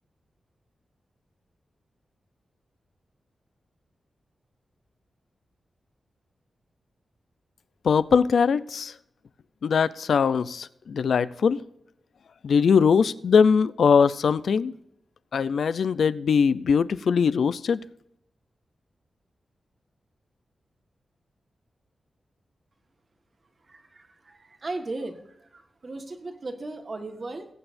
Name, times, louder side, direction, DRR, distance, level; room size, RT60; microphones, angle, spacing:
voice 1, 7.8-8.9 9.6-11.6 12.4-14.7 15.3-17.8, left 6 dB, 65° left, 16 dB, 0.5 m, -21 dB
voice 2, 23.7-27.5, right 2 dB, 35° right, 5 dB, 1.5 m, -37 dB
20.5 x 9.0 x 2.6 m, 0.77 s
wide cardioid pair, 175°, 0 cm